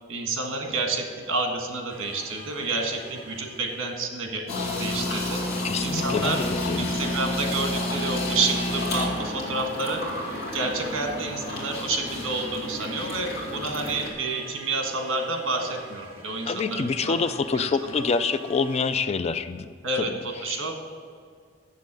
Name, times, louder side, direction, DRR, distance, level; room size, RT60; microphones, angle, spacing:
voice 1, 0.1-4.4 4.8-5.4 5.8-6.4 6.8-10.0 10.5-17.2 17.5-17.9 19.8-20.7, right 3 dB, 70° right, 2 dB, 1.6 m, -29 dB
sound 1, 1.9-4.6 8.9-18.8, right 2 dB, 50° right, 2.0 m, -47 dB
sound 2, 4.5-14.1, left 1 dB, 55° left, 2.5 m, -30 dB
voice 2, 5.6-6.9 16.4-19.7 19.9-20.1, left 4 dB, 30° left, 12 dB, 0.3 m, -26 dB
7.6 x 7.3 x 7.4 m, 2.1 s
head